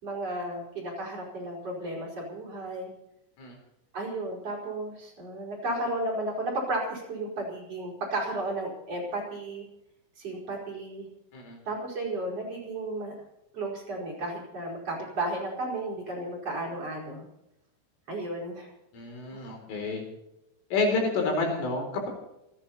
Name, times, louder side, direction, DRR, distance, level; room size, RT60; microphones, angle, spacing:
voice 1, 0.0-2.9 3.9-9.7 10.2-11.1 11.7-13.1 13.5-17.3 18.1-18.7, right 2 dB, 30° right, -2 dB, 5.8 m, -33 dB
voice 2, 18.9-20.0 20.7-22.1, left 3 dB, 75° left, 2 dB, 6.8 m, -29 dB
28.0 x 10.5 x 4.4 m, 0.87 s
omnidirectional pair, 5.8 m